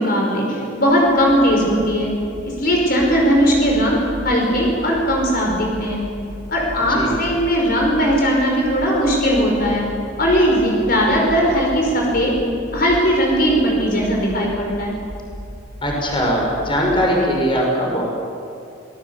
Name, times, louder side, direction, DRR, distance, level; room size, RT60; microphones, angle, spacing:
voice 1, 0.0-2.1 2.4-6.0 6.5-9.8 10.2-12.3 12.7-14.9, equal, 50° left, -1 dB, 5.1 m, -18 dB
sound 1, 0.8-17.2, equal, 30° right, 3.3 m, -36 dB
voice 2, 15.8-18.0, equal, 25° left, -1 dB, 5.7 m, -20 dB
27.0 x 19.5 x 8.3 m, 2.5 s
head